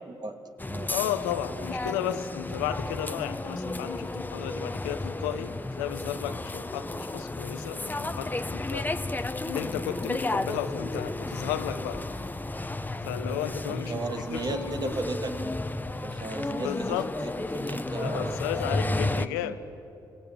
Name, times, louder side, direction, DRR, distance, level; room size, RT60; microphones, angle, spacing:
sound 1, 0.6-19.3, left 2 dB, 20° left, 1.1 m, -33 dB
voice 1, 0.9-8.9 9.2-12.0 13.0-14.9 16.6-17.1 18.0-19.6, left 10 dB, 90° left, 10 dB, 0.9 m, -34 dB
voice 2, 13.2-15.4 16.0-16.9 17.2-18.4 18.7-19.5, right 3 dB, 45° right, 6 dB, 2.5 m, -36 dB
29.0 x 19.0 x 9.2 m, 2.9 s
hypercardioid pair, 40°, 10 cm